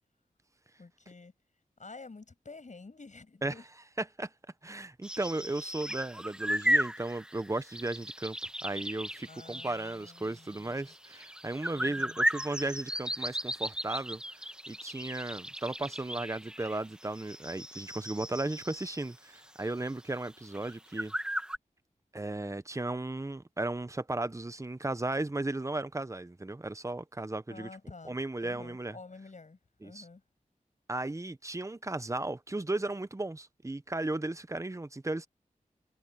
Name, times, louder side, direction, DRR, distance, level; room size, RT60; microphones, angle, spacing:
voice 1, 0.8-1.3 1.8-3.7 9.3-10.9 11.7-12.2 27.5-28.2 28.4-30.2, left 3 dB, 60° left, 7.9 m, -50 dB
voice 2, 4.0-4.3 4.6-8.4 8.6-21.1 22.1-27.7 28.0-29.0 29.8-30.0 30.9-35.3, right 2 dB, 20° right, 0.9 m, -35 dB
sound 1, 5.0-19.3 19.6-19.7 20.2-20.3 20.5-21.6, equal, 5° right, 1.6 m, -35 dB
cardioid pair, 55°, 14 cm